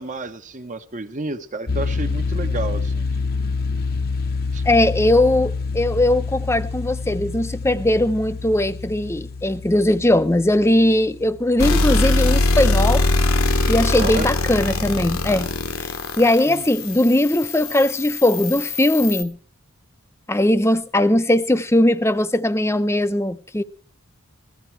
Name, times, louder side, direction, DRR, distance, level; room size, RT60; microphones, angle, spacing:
voice 1, 0.0-3.0 4.5-4.6 14.0-14.3 16.5-16.7, right 3 dB, 35° right, 0.8 m, -31 dB
sound 1, 1.7-12.5, left 4 dB, 40° left, 0.8 m, -27 dB
voice 2, 4.7-13.1 13.7-15.5 15.8-15.9 16.2-19.4 20.3-23.6, left 1 dB, 10° left, 0.6 m, -19 dB
sound 2, 11.6-19.2, left 2 dB, 65° left, 1.2 m, -22 dB
16.5 x 14.5 x 4.6 m
head